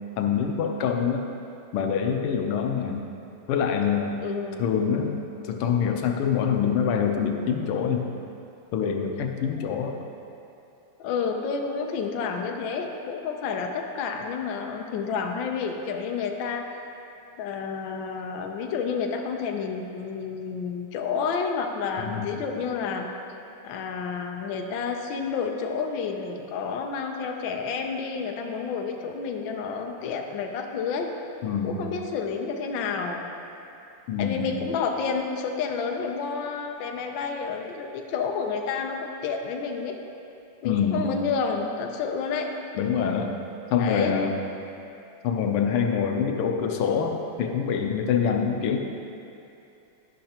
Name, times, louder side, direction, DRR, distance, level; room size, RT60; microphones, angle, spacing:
voice 1, 0.2-1.2 1.7-3.1 3.5-4.2 4.6-8.1 8.7-10.0 22.0-22.3 31.4-31.8 34.1-34.5 40.6-41.1 42.7-43.3 43.7-44.4 45.2-48.8, left 7 dB, 85° left, 4 dB, 1.7 m, -25 dB
voice 2, 4.2-4.7 9.6-9.7 11.0-16.8 17.4-23.1 23.6-31.1 31.6-33.3 34.2-40.0 40.6-42.5 43.8-44.2, left 5 dB, 70° left, 3 dB, 1.3 m, -30 dB
12.0 x 10.5 x 2.9 m, 2.7 s
omnidirectional pair, 2.4 m